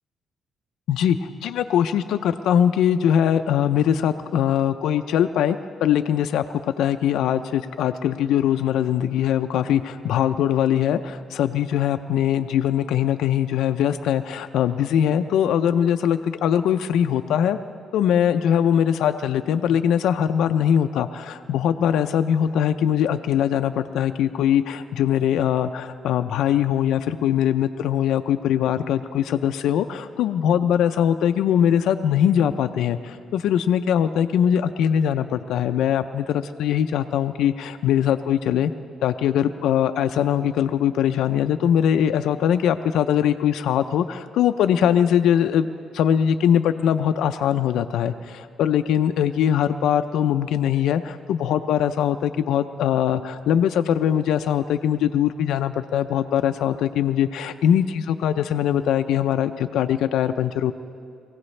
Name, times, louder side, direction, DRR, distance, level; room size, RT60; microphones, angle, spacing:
voice 1, 0.9-6.4 6.8-17.6 17.9-38.7 39.0-45.7 45.9-60.7, left 9 dB, 80° left, 8 dB, 0.4 m, -21 dB
23.0 x 16.5 x 3.3 m, 2.3 s
cardioid pair, 90°, 0 cm